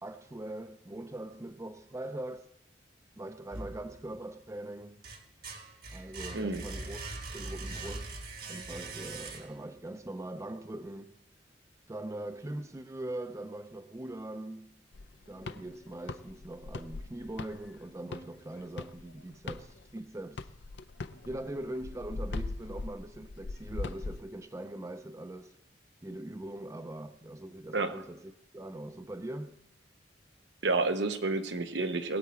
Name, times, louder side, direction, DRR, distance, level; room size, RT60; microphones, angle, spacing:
voice 1, 0.0-2.5 3.2-5.0 5.9-7.0 7.3-8.2 8.5-11.2 11.9-14.7 15.3-20.5 21.2-25.6 26.0-29.6, right 1 dB, 15° right, 0.5 m, -41 dB
sound 1, 3.5-4.3 4.8-9.8, right 2 dB, 55° right, 1.5 m, -42 dB
sound 2, 14.9-20.0 20.4-24.2, left 3 dB, 70° left, 0.5 m, -40 dB
voice 2, 30.6-32.2, right 3 dB, 75° right, 0.9 m, -30 dB
20.0 x 8.4 x 4.3 m
head